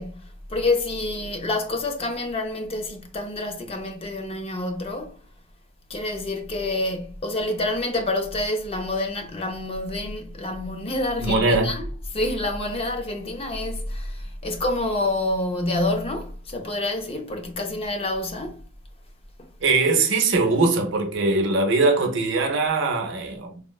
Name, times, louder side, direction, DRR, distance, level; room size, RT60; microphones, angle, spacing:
voice 1, 0.0-5.2 5.9-18.6, left 2 dB, 30° left, 0.4 m, -28 dB
voice 2, 11.2-11.8 19.6-23.6, right 3 dB, 60° right, 0.6 m, -21 dB
3.4 x 2.1 x 2.2 m
head